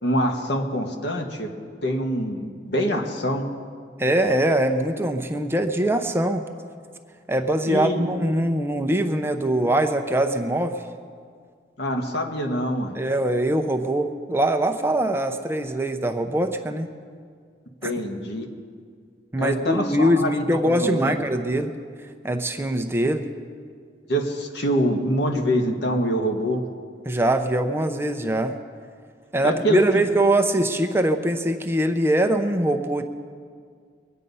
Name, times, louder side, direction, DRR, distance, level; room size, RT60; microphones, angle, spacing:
voice 1, 0.0-1.5 1.8-3.5 7.6-8.1 11.8-12.9 17.8-18.5 19.4-21.1 24.1-26.6 29.4-30.1, equal, 70° left, 3 dB, 1.5 m, -25 dB
voice 2, 4.0-6.4 7.3-10.8 12.9-16.9 17.8-17.9 19.3-21.7 22.2-23.3 27.0-28.6 29.3-33.0, right 1 dB, 15° right, 6 dB, 0.6 m, -22 dB
22.5 x 8.9 x 5.5 m, 2.1 s
head